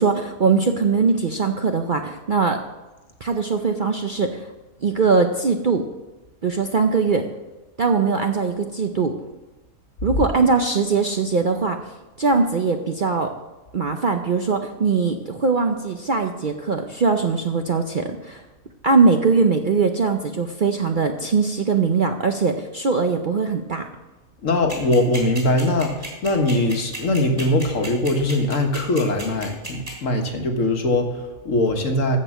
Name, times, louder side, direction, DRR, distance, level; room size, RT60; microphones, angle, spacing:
voice 1, 0.0-2.6 3.2-4.5 4.8-5.9 6.4-7.3 7.8-9.1 10.0-11.8 12.2-13.3 13.7-18.4 18.8-23.9, right 4 dB, 50° right, 5 dB, 0.6 m, -21 dB
voice 2, 24.4-32.2, left 1 dB, 60° left, 4 dB, 1.6 m, -21 dB
sound 1, 24.7-29.9, right 2 dB, 25° right, 3.6 m, -33 dB
14.0 x 5.4 x 7.4 m, 1.1 s
omnidirectional pair, 1.5 m